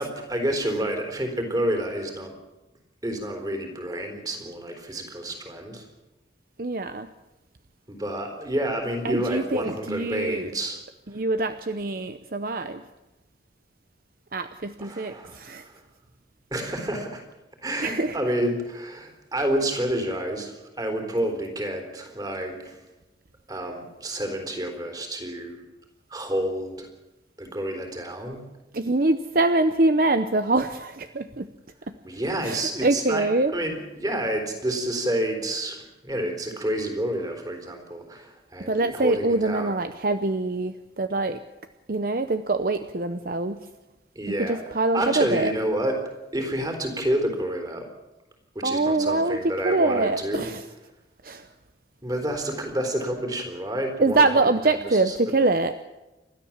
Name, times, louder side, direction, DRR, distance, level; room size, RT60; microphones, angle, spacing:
voice 1, 0.0-2.3 3.0-5.8 7.9-10.8 14.8-15.7 16.5-17.2 17.6-22.8 23.5-25.6 26.1-26.9 27.4-28.4 32.0-35.8 36.0-39.8 44.2-46.0 46.3-47.9 48.6-50.5 52.0-55.4, right 1 dB, 20° right, 4 dB, 3.8 m, -29 dB
voice 2, 6.6-7.1 9.0-10.5 11.1-12.8 14.3-15.6 17.8-18.2 28.7-31.5 32.4-33.5 38.6-41.4 41.9-43.6 44.4-45.5 48.6-49.4 49.6-50.6 51.2-51.4 54.0-55.7, right 2 dB, 50° right, 10 dB, 0.8 m, -24 dB
29.5 x 13.5 x 7.4 m, 1.0 s
head